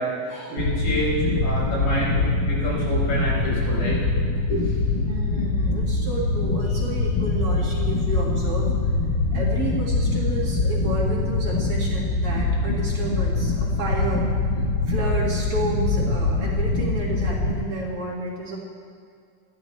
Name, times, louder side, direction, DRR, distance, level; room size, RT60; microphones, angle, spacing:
voice 1, 0.0-4.0 4.5-4.8, right 1 dB, 90° left, -6 dB, 6.2 m, -27 dB
sound 1, 0.6-17.5, left 3 dB, 70° left, 1.0 m, -23 dB
voice 2, 5.0-8.7 9.3-14.3 14.6-18.6, right 2 dB, 50° right, -3 dB, 2.7 m, -31 dB
20.5 x 14.0 x 3.3 m, 2.4 s
omnidirectional pair, 3.8 m